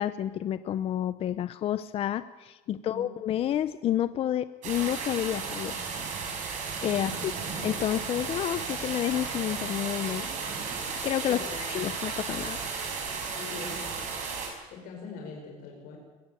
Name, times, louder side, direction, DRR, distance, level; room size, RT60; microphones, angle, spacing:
voice 1, 0.0-5.8 6.8-7.3 7.6-10.2 11.0-11.4 11.7-12.6, left 11 dB, 40° left, 14 dB, 0.6 m, -29 dB
sound 1, 4.6-14.5, right 5 dB, 55° right, 6.1 m, -34 dB
voice 2, 11.3-11.7 13.3-14.2 14.7-16.0, left 4 dB, 75° left, 0 dB, 5.3 m, -42 dB
22.0 x 15.0 x 8.9 m, 1.2 s
cardioid pair, 145°, 15 cm